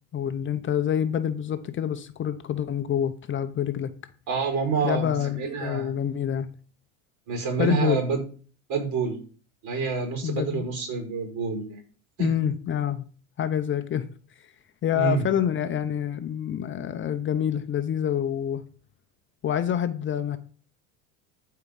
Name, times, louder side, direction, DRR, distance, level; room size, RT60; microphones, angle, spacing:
voice 1, 0.1-3.9 4.8-6.5 7.6-8.0 10.2-10.6 12.2-13.1 13.4-14.1 14.4-14.5 14.8-18.6 19.4-20.4, left 9 dB, 30° left, 0.8 m, -27 dB
voice 2, 4.3-5.9 7.3-8.2 8.7-9.2 9.6-11.8 12.2-12.3 14.9-15.3, right 5 dB, 50° right, 5.5 m, -28 dB
14.0 x 4.8 x 5.4 m
supercardioid pair, 115°, 39 cm